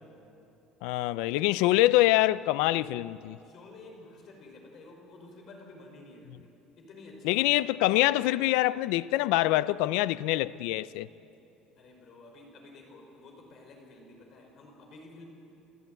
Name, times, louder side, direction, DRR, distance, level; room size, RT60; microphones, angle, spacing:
voice 1, 0.8-3.4 7.2-11.1, left 17 dB, 80° left, 0.5 m, -25 dB
voice 2, 3.4-7.7 11.8-15.3, left 2 dB, 40° left, 5.5 m, -51 dB
29.0 x 15.5 x 9.3 m
cardioid pair, 165°, 0 cm